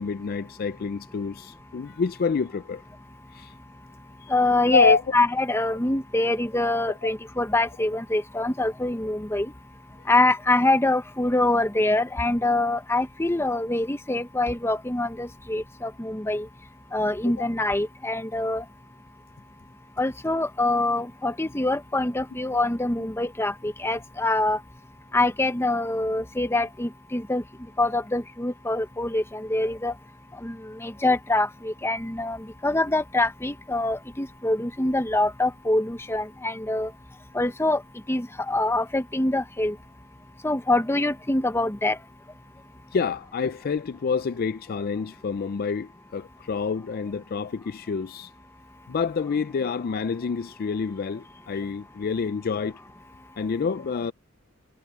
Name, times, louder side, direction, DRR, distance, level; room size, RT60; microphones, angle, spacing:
voice 1, 0.0-2.8 3.3-3.5 4.2-4.3 4.7-5.1 17.2-17.3 42.9-48.3 48.9-52.8 53.4-54.1, left 5 dB, 50° left, 0.4 m, -27 dB
voice 2, 4.3-9.5 10.1-16.5 16.9-18.6 20.0-24.6 25.1-27.4 27.8-29.9 30.4-32.4 32.6-36.9 37.3-37.8 38.1-39.7 40.4-42.0, left 2 dB, 15° left, 0.9 m, -25 dB
head